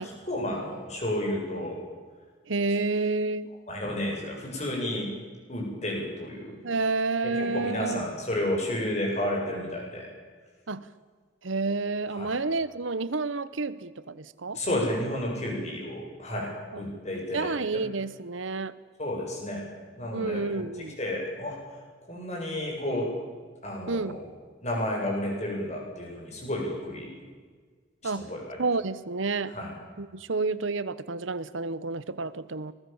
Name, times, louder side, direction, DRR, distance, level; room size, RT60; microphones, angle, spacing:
voice 1, 0.0-1.8 3.7-5.1 5.5-6.6 7.3-10.1 12.1-12.4 14.5-17.8 19.0-19.7 20.0-20.4 21.0-21.6 22.1-23.1 23.6-24.2 24.6-27.1 28.0-28.6 29.5-29.7, left 1 dB, 35° left, 0 dB, 7.9 m, -31 dB
voice 2, 2.5-3.5 6.6-8.0 10.7-10.9 11.4-14.6 17.3-18.7 20.1-21.0 23.9-24.2 28.0-28.3 28.6-29.5 30.0-32.7, right 3 dB, 85° right, 16 dB, 1.0 m, -29 dB
26.0 x 20.0 x 7.2 m, 1.6 s
head